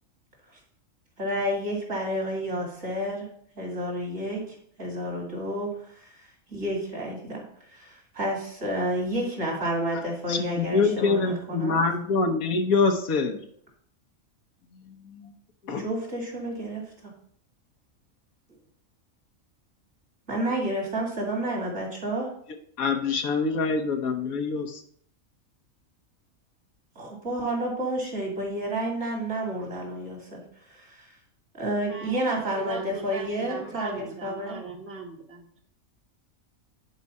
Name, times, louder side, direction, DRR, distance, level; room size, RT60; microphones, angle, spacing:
voice 1, 1.2-3.3 3.5-5.7 6.0-6.1 6.5-7.4 7.7-11.8 15.8-17.1 20.3-22.3 27.0-30.4 30.7-31.0 31.5-34.6, right 1 dB, 55° right, -1 dB, 2.9 m, -30 dB
voice 2, 10.3-13.4 15.0-15.3 15.6-15.8 22.8-24.7, left 4 dB, 90° left, 4 dB, 1.5 m, -25 dB
voice 3, 31.8-35.6, right 3 dB, 10° right, 2 dB, 1.0 m, -40 dB
10.0 x 4.9 x 4.2 m, 0.63 s
omnidirectional pair, 1.4 m